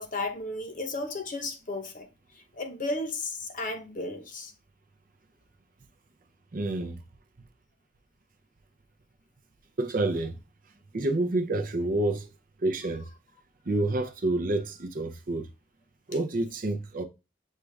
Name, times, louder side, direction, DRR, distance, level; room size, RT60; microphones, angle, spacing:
voice 1, 0.0-2.1 2.5-4.5, left 2 dB, 45° left, 0.8 m, -34 dB
voice 2, 6.5-7.0 9.8-10.4 10.9-12.3 12.6-13.0 13.7-15.5 16.1-17.0, right 2 dB, 50° right, 0.6 m, -28 dB
6.5 x 2.4 x 3.2 m
head